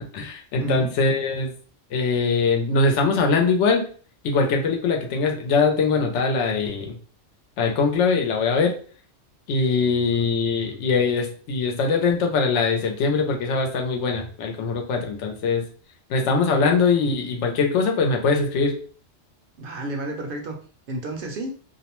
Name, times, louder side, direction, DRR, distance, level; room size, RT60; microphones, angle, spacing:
voice 1, 0.0-1.5 1.9-3.9 4.2-7.0 7.6-8.7 9.5-15.7 16.1-18.7, left 4 dB, 80° left, 2 dB, 0.9 m, -22 dB
voice 2, 19.6-20.6 20.9-21.5, right 1 dB, 60° right, 2 dB, 0.7 m, -30 dB
2.5 x 2.0 x 2.9 m, 0.43 s
omnidirectional pair, 1.2 m